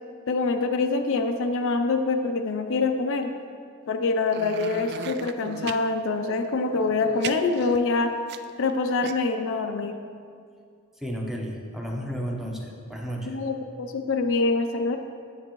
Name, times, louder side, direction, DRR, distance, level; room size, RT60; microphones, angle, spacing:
voice 1, 0.3-3.3 3.9-8.1 8.6-10.0 13.3-15.0, left 3 dB, 60° left, 5 dB, 0.5 m, -25 dB
sound 1, 4.3-5.8 6.7-8.7 9.0-9.1, right 8 dB, 50° right, 0.3 m, -37 dB
voice 2, 11.0-13.4, equal, ahead, -1 dB, 0.8 m, -32 dB
9.3 x 7.7 x 3.0 m, 2.3 s
head